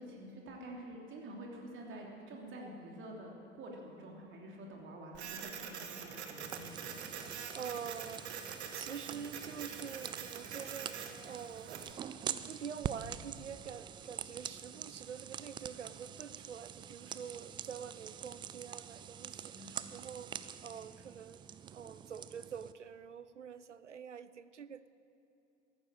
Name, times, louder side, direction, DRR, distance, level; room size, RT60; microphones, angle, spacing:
voice 1, 0.0-7.1 19.5-19.7, right 1 dB, 35° right, 0 dB, 3.0 m, -48 dB
Printer, 5.1-11.9, right 7 dB, 65° right, 1.4 m, -45 dB
sound 1, 6.4-22.7, right 9 dB, 15° right, 0.3 m, -46 dB
voice 2, 7.3-11.9 12.5-21.4 21.7-24.9, right 7 dB, 85° right, 14 dB, 0.6 m, -46 dB
14.5 x 11.5 x 7.7 m, 3.0 s
figure-of-eight pair, 80°, 35 cm